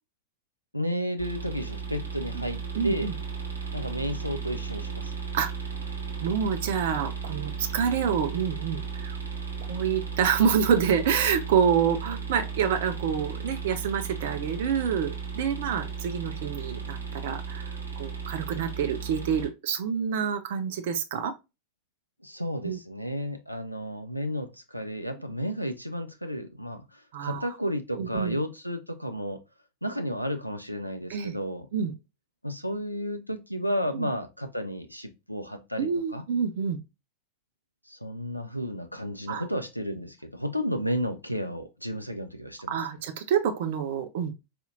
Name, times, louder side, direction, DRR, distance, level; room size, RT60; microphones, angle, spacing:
voice 1, 0.7-3.1 3.7-5.1 22.2-29.4 29.8-31.7 32.4-36.2 37.9-42.8, equal, 90° left, 0.4 m, -32 dB
sound 1, 1.2-19.5, right 6 dB, 80° right, 1.1 m, -35 dB
voice 2, 2.7-3.1 5.3-5.5 6.2-9.2 9.7-17.0 17.2-21.3 22.6-22.8 27.1-27.5 28.0-28.3 31.1-31.4 31.7-31.9 33.9-34.1 35.8-36.8 39.3-39.4 42.7-44.3, right 7 dB, 55° right, 0.4 m, -27 dB
4.2 x 2.8 x 2.4 m
figure-of-eight pair, 90°, 0 cm